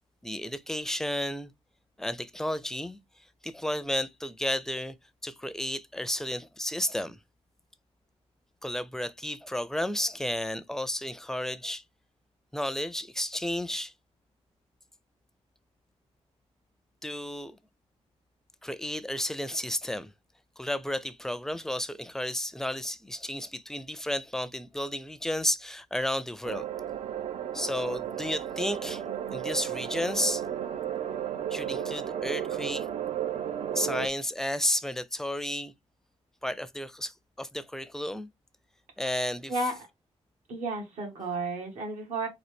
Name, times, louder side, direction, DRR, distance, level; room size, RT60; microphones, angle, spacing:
voice 1, 0.2-1.5 2.0-3.0 3.4-5.0 5.2-7.2 8.6-11.8 12.5-13.9 17.0-17.6 18.6-20.1 20.6-26.6 27.5-29.0 29.3-30.4 31.5-32.9 33.7-35.7 36.4-38.3 39.0-39.5, left 1 dB, 5° left, 0.4 m, -32 dB
sound 1, 26.4-34.1, right 10 dB, 65° right, 0.6 m, -33 dB
voice 2, 39.5-39.9 40.5-42.3, right 2 dB, 85° right, 1.8 m, -32 dB
3.9 x 2.5 x 3.4 m
cardioid pair, 80°, 12 cm